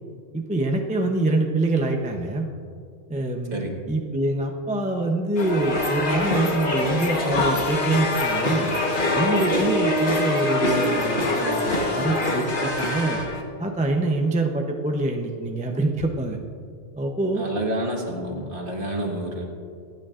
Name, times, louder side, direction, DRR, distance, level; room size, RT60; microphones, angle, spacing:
voice 1, 0.3-2.5 3.1-3.6 3.9-8.7 9.1-13.2 13.6-16.4 17.0-17.4, right 2 dB, 10° right, 2 dB, 0.6 m, -25 dB
sound 1, 5.4-13.4, left 1 dB, 45° left, 1.4 m, -25 dB
sound 2, 7.3-13.3, left 3 dB, 85° left, 1.5 m, -31 dB
voice 2, 17.3-19.4, right 1 dB, 50° right, 0 dB, 1.7 m, -29 dB
26.5 x 9.1 x 2.5 m, 2.4 s
omnidirectional pair, 1.2 m